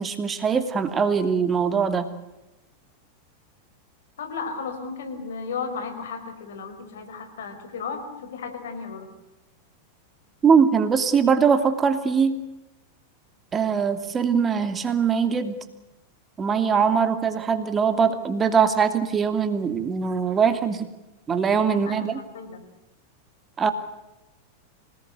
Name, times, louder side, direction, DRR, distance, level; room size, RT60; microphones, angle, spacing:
voice 1, 0.0-2.1 10.4-12.4 13.5-15.6 16.4-20.9 21.3-22.2 23.6-23.7, right 6 dB, 20° right, 9 dB, 2.7 m, -22 dB
voice 2, 4.2-9.1 21.7-22.7, left 5 dB, 60° left, 7 dB, 5.3 m, -34 dB
26.5 x 19.0 x 8.2 m, 0.98 s
figure-of-eight pair, 90°, 0 cm